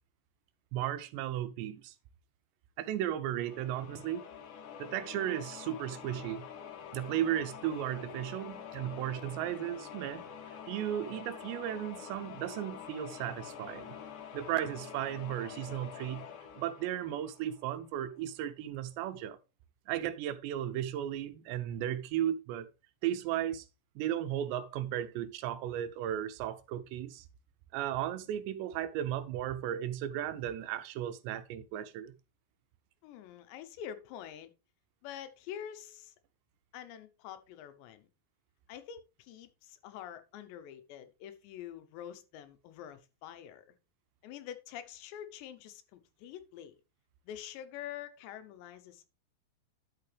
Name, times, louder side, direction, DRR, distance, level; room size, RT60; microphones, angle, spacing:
voice 1, 0.7-1.9 2.8-4.2 4.8-6.5 6.9-10.3 10.7-14.0 14.3-16.2 16.6-19.4 19.9-22.7 23.0-23.7 24.0-27.3 27.7-32.1, right 11 dB, 85° right, 3.0 m, -35 dB
sound 1, 3.4-18.0, left 8 dB, 65° left, 2.2 m, -47 dB
voice 2, 33.0-34.5 35.0-36.1 36.7-38.1 38.7-43.8 44.2-46.7 47.2-49.1, left 10 dB, 85° left, 3.2 m, -46 dB
10.5 x 6.8 x 3.4 m
omnidirectional pair, 4.9 m